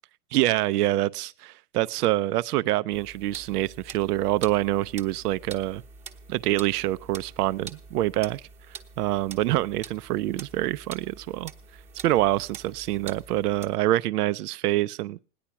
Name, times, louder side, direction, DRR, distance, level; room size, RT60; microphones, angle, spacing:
voice 1, 0.3-5.8 6.3-8.4 9.0-11.5 12.0-15.2, right 15 dB, 80° right, 0.7 m, -26 dB
sound 1, 2.9-13.8, right 5 dB, 15° right, 1.0 m, -45 dB
18.0 x 10.0 x 5.8 m
supercardioid pair, 165°, 45 cm